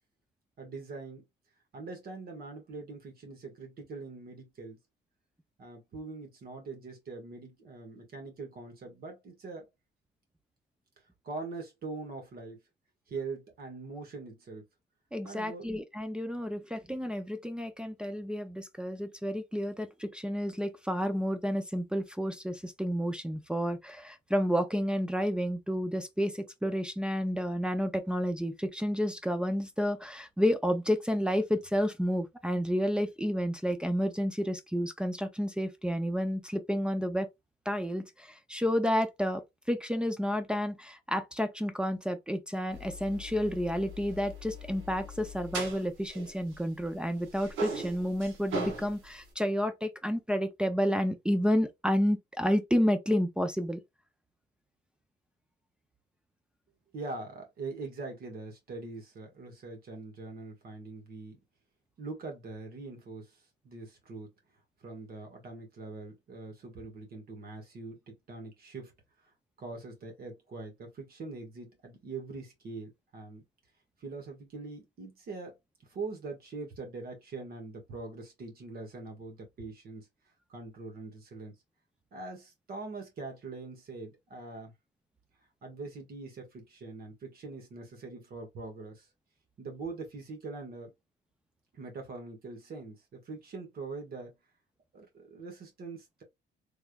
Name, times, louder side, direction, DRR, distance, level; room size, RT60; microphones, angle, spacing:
voice 1, 0.6-1.2 1.7-4.8 5.6-9.7 11.2-12.6 13.1-14.6 15.2-15.7 56.9-61.4 62.0-64.3 64.8-68.9 69.2-69.3 69.6-73.4 74.0-75.6 75.9-80.1 80.5-81.5 82.1-84.7 85.6-89.1 89.6-90.9 91.7-94.3 94.9-96.2, right 3 dB, 50° right, 1.5 m, -43 dB
voice 2, 15.1-37.3 37.7-39.4 39.7-53.8, equal, 5° right, 0.4 m, -30 dB
sound 1, 42.7-46.9 47.2-49.3, right 2 dB, 90° right, 1.3 m, -40 dB
3.5 x 3.1 x 2.2 m
cardioid pair, 155°, 20 cm